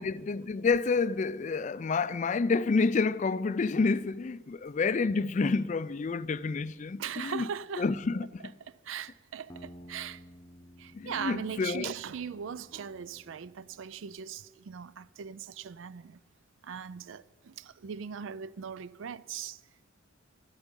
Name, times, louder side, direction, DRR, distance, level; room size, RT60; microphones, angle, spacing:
voice 1, 0.0-7.5 7.8-8.4 10.9-11.9, left 4 dB, 35° left, 0.3 m, -29 dB
voice 2, 7.0-7.9 8.4-10.2 10.8-16.2 16.6-19.6, right 7 dB, 65° right, 0.4 m, -40 dB
sound 1, 9.5-14.2, equal, 15° left, 0.8 m, -54 dB
12.5 x 8.9 x 9.8 m
head